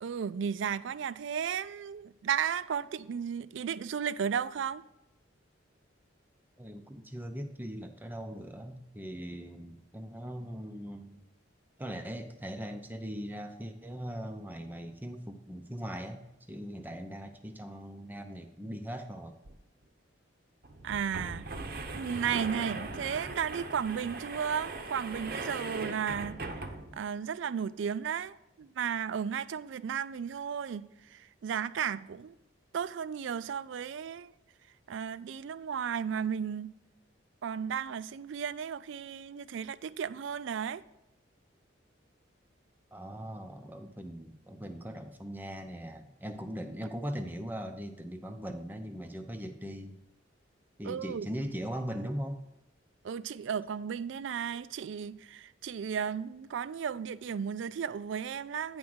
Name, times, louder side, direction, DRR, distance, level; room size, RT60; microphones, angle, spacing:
voice 1, 0.0-4.8 20.8-26.4 26.9-32.3 32.7-34.3 34.9-36.7 37.4-40.8 50.8-51.3 53.0-58.8, right 7 dB, 70° right, 0.3 m, -34 dB
voice 2, 6.6-11.2 11.8-19.3 42.9-50.0 50.8-52.4, equal, 10° right, 0.5 m, -40 dB
sound 1, 19.4-19.5 19.8-19.9 20.6-27.1, right 3 dB, 50° right, 0.7 m, -39 dB
9.4 x 3.7 x 6.2 m
head